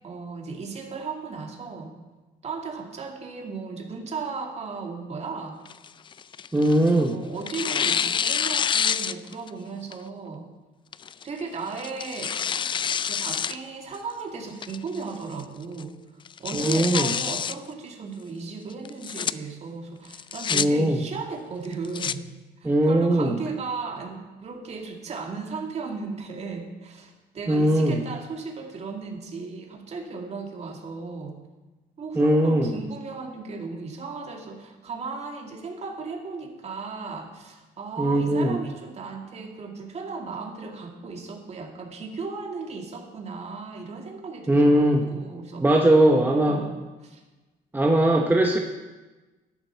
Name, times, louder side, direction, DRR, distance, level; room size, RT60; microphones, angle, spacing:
voice 1, 0.0-1.9 2.4-5.6 6.7-10.5 11.2-12.4 13.0-16.0 16.4-22.2 22.6-31.4 32.0-46.0 46.3-47.2, right 4 dB, 40° right, 2 dB, 2.2 m, -36 dB
Tearing, 5.6-7.0 7.5-9.5 9.9-10.0 10.9-11.2 11.8-13.6 13.9-14.0 14.6-15.0 15.4-15.5 15.8-15.9 16.3-17.5 18.8-19.3 20.1-20.6 21.6-22.1, left 7 dB, 30° left, 0.3 m, -27 dB
voice 2, 6.5-7.2 16.5-17.1 20.5-21.0 22.6-23.4 27.5-28.0 32.2-32.7 38.0-38.6 44.5-45.1 45.6-46.6 47.7-48.6, right 1 dB, 10° right, 2 dB, 0.9 m, -20 dB
12.5 x 11.5 x 4.5 m, 1.2 s
cardioid pair, 110°, 17 cm